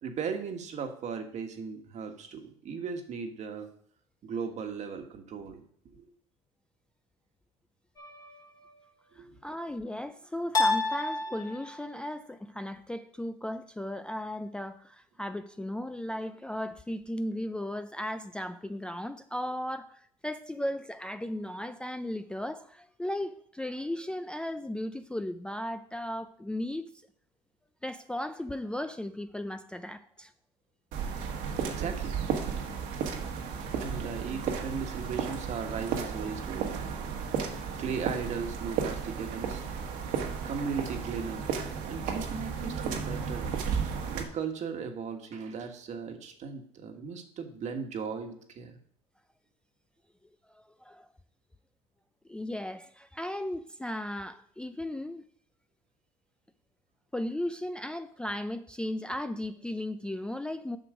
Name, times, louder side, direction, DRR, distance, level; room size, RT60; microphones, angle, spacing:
voice 1, 0.0-3.7 4.2-5.6 5.9-6.1 9.1-9.4 31.6-32.2 33.8-36.9 37.8-39.7 40.4-41.4 41.8-43.5 44.1-48.8, right 6 dB, 55° right, 1.5 m, -37 dB
sound 1, 8.0-8.7 10.5-12.0, left 3 dB, 25° left, 1.7 m, -30 dB
voice 2, 9.2-26.9 27.8-30.3 33.2-33.5 50.5-51.1 52.3-55.3 57.1-60.8, left 1 dB, 5° left, 0.4 m, -36 dB
sound 2, 30.9-44.2, right 6 dB, 75° right, 1.5 m, -33 dB
7.9 x 6.0 x 5.0 m
supercardioid pair, 90°, 14 cm